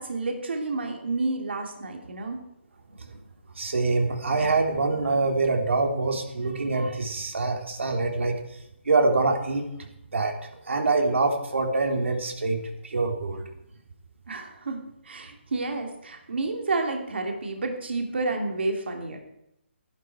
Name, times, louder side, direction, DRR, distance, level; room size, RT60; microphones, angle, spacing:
voice 1, 0.0-2.4 14.3-19.2, right 3 dB, 60° right, 3 dB, 2.7 m, -30 dB
voice 2, 3.6-8.4 8.8-9.6 10.1-10.3 10.7-13.4, right 3 dB, 80° right, 2 dB, 3.3 m, -25 dB
14.5 x 11.0 x 4.8 m, 0.83 s
hypercardioid pair, 175°, 7 cm